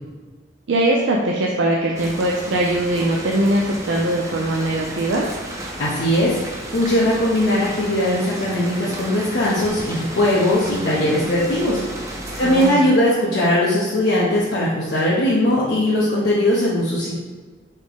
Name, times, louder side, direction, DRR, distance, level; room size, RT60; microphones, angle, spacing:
voice 1, 0.7-5.3 12.4-12.9, right 1 dB, 80° right, -1 dB, 0.5 m, -21 dB
sound 1, 1.9-12.7, right 1 dB, 15° right, 0.5 m, -33 dB
voice 2, 5.8-6.4 6.7-11.8 12.1-17.1, left 1 dB, 60° left, -8 dB, 0.8 m, -19 dB
4.2 x 3.6 x 3.5 m, 1.4 s
head